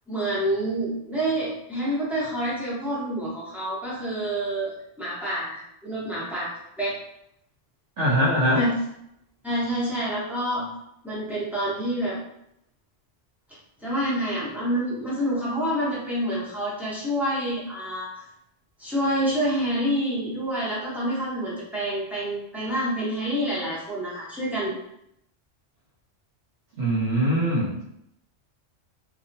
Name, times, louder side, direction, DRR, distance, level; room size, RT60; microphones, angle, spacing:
voice 1, 0.1-4.7 5.0-6.5 6.8-7.0 8.5-8.7 9.4-10.7 11.0-12.2 13.8-18.1 18.8-24.8, right 1 dB, ahead, -7 dB, 0.6 m, -27 dB
voice 2, 8.0-8.6 26.8-27.8, equal, 75° right, -6 dB, 1.1 m, -22 dB
3.0 x 2.0 x 2.6 m, 0.77 s
omnidirectional pair, 1.3 m